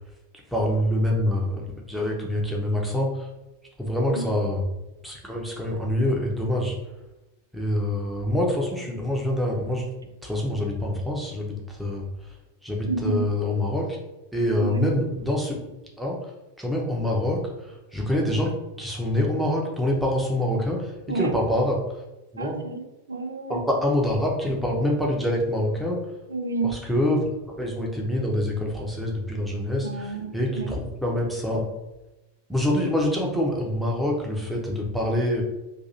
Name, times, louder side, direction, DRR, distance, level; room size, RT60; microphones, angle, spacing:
voice 1, 0.5-3.3 3.8-4.7 5.0-6.7 7.5-9.8 10.2-12.1 12.6-14.0 14.3-15.6 16.0-16.2 16.6-18.5 18.8-21.8 22.3-22.6 23.5-26.0 26.6-27.3 27.6-31.7 32.5-35.4, left 1 dB, ahead, -2 dB, 0.8 m, -25 dB
voice 2, 12.9-13.2 14.6-14.9 21.1-21.3 22.4-23.6 26.3-26.8 29.8-30.7, right 3 dB, 75° right, 5 dB, 0.4 m, -30 dB
2.8 x 2.7 x 4.1 m, 1.0 s
figure-of-eight pair, 90°, 0 cm